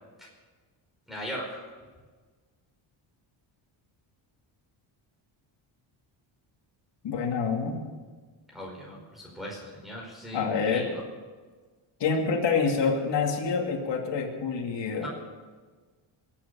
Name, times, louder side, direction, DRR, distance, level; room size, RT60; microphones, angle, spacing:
voice 1, 1.1-1.6 8.5-11.0 15.0-15.1, equal, ahead, -4 dB, 5.0 m, -39 dB
voice 2, 7.0-7.8 10.3-10.9 12.0-15.1, left 5 dB, 60° left, 0 dB, 2.6 m, -27 dB
23.0 x 8.8 x 7.0 m, 1.4 s
cardioid pair, 105°, 49 cm